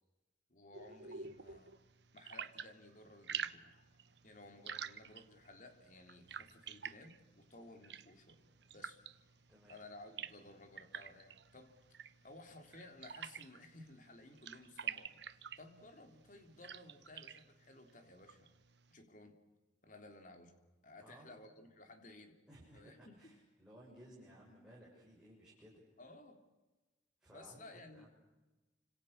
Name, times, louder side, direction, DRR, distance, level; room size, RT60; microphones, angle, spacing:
voice 1, 0.5-1.8 2.1-3.7 4.2-9.0 9.7-18.5 18.9-19.4 19.8-20.6 20.8-22.4 22.7-23.4 26.0-26.4 27.3-28.1, left 2 dB, 45° left, 6 dB, 3.6 m, -57 dB
sound 1, 0.7-18.9, right 7 dB, 70° right, 1.1 m, -49 dB
sound 2, 3.3-17.0, right 1 dB, 20° right, 7.8 m, -78 dB
voice 2, 21.0-21.4 22.5-25.8 27.2-28.1, right 1 dB, 5° right, -5 dB, 6.8 m, -59 dB
29.5 x 26.5 x 6.7 m, 1.1 s
head